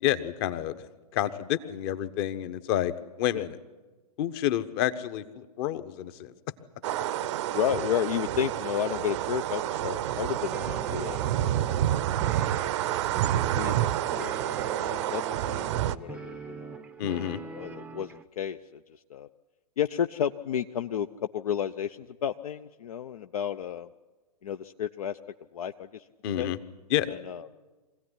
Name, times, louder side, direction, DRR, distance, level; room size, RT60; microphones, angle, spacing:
voice 1, 0.0-0.8 1.1-3.6 4.2-6.3 17.0-17.4 26.2-26.6 26.9-27.2, left 12 dB, 40° left, 12 dB, 1.2 m, -29 dB
sound 1, 6.8-16.0, right 12 dB, 45° right, 0.7 m, -29 dB
voice 2, 7.5-11.7 12.5-12.7 13.6-14.4 14.8-16.8 17.5-19.3 19.8-21.1 21.3-23.9 24.4-25.2 25.5-26.0 26.4-26.5 27.1-27.5, left 9 dB, 60° left, 9 dB, 0.7 m, -32 dB
sound 2, 10.5-18.2, right 3 dB, 5° right, 0.6 m, -42 dB
23.0 x 16.5 x 9.9 m, 1.2 s
figure-of-eight pair, 115°, 20 cm